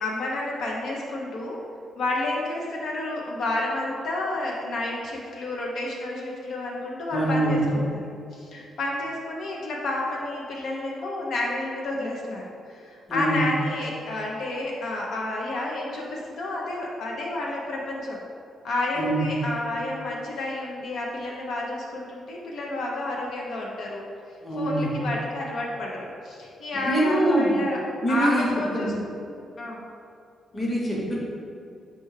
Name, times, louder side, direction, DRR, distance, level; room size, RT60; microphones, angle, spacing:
voice 1, 0.0-1.6 2.0-7.8 8.3-12.4 12.7-18.2 18.6-24.0 24.5-27.8 28.1-28.9 29.6-29.9, left 2 dB, 65° left, -2 dB, 0.5 m, -30 dB
voice 2, 7.1-7.7 13.1-13.4 18.9-19.2 24.4-25.0 26.7-27.6 28.0-28.5 28.7-28.9 30.5-31.2, right 1 dB, 15° left, -5 dB, 0.9 m, -24 dB
4.4 x 2.3 x 4.6 m, 2.4 s
cardioid pair, 150°, 0 cm